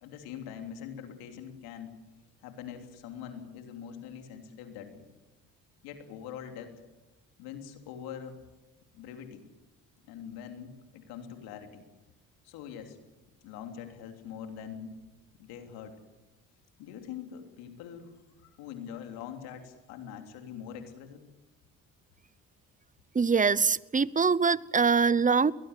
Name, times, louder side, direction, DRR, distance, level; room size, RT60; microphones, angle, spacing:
voice 1, 0.0-2.0 2.4-5.1 5.8-6.8 7.4-8.4 8.9-9.4 10.1-11.8 12.4-13.0 13.4-15.0 15.4-16.0 16.8-18.1 18.4-21.2, left 8 dB, 90° left, 5 dB, 3.2 m, -43 dB
voice 2, 23.1-25.5, right 5 dB, 20° right, 20 dB, 0.8 m, -23 dB
22.0 x 19.5 x 8.2 m, 1.0 s
supercardioid pair, 65°, 36 cm